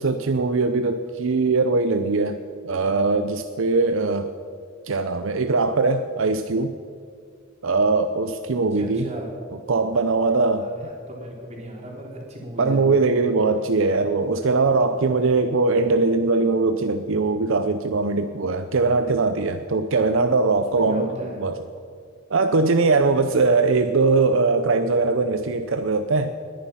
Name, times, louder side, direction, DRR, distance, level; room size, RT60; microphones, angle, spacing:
voice 1, 0.0-4.3 4.8-6.7 7.6-9.1 9.7-10.7 12.6-21.6 22.3-26.3, right 3 dB, 70° right, 9 dB, 0.6 m, -21 dB
voice 2, 8.7-9.3 10.6-12.9 20.7-21.4, right 1 dB, 35° right, -2 dB, 3.4 m, -36 dB
20.0 x 10.5 x 5.7 m, 2.2 s
head